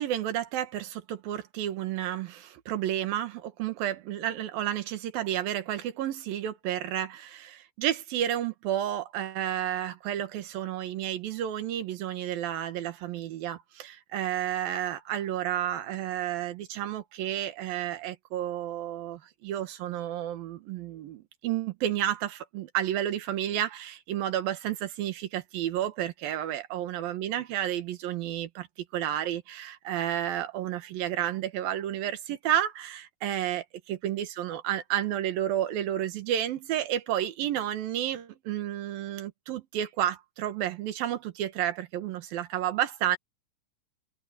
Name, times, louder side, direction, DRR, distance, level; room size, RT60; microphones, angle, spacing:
voice 1, 0.0-28.7 28.9-43.2, right 11 dB, 85° right, 3.2 m, -31 dB
omnidirectional pair, 4.0 m